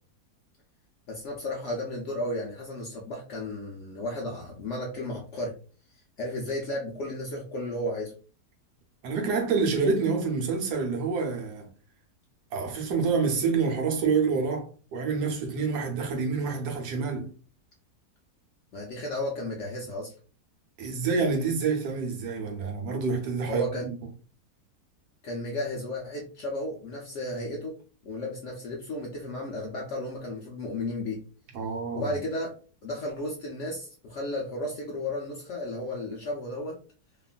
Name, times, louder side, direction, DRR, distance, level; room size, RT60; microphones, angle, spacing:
voice 1, 1.1-5.5 6.2-8.1 18.7-20.1 23.5-23.9 25.2-27.7 28.0-31.2 31.9-32.6 32.8-36.8, left 1 dB, 70° left, 0.7 m, -33 dB
voice 2, 9.0-11.7 12.5-17.3 20.8-23.6 31.5-32.1, right 5 dB, 75° right, 1.2 m, -27 dB
2.9 x 2.4 x 2.3 m
omnidirectional pair, 1.8 m